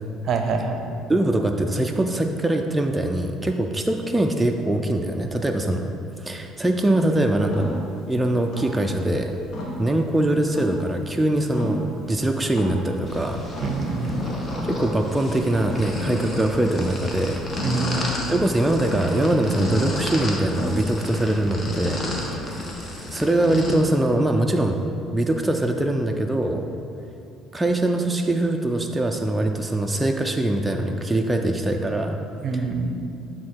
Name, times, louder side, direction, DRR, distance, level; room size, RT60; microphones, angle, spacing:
voice 1, 0.3-0.8 13.6-14.3 17.6-18.1 32.4-32.9, right 4 dB, 50° right, 6 dB, 0.6 m, -25 dB
voice 2, 1.1-5.9 6.2-7.8 8.1-9.3 9.8-13.4 14.6-17.4 18.3-22.0 23.1-24.8 25.1-26.7 27.5-32.2 32.5-32.7, right 1 dB, 10° right, 3 dB, 0.4 m, -22 dB
sound 1, 6.7-21.5, equal, 60° left, 1.4 m, -37 dB
sound 2, 13.0-23.8, left 1 dB, 30° left, 1.2 m, -31 dB
8.4 x 3.7 x 4.5 m, 2.6 s
supercardioid pair, 95°, 0 cm